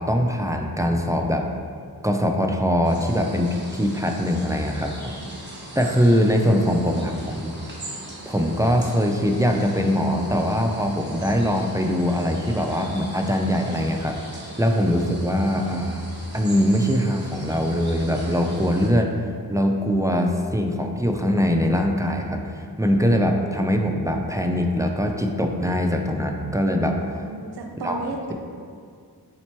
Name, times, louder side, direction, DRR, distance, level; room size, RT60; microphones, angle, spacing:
voice 1, 0.0-1.5 2.0-5.1 5.8-7.5 8.3-14.2 14.6-16.1 16.3-19.2 19.5-22.5 22.8-27.0 27.8-28.0, equal, 10° right, 2 dB, 0.3 m, -22 dB
sound 1, 2.8-18.9, right 1 dB, 30° right, 1.1 m, -40 dB
voice 2, 6.4-7.3 27.1-28.3, right 3 dB, 80° right, 2 dB, 0.5 m, -34 dB
4.1 x 3.0 x 4.3 m, 2.1 s
wide cardioid pair, 55°, 38 cm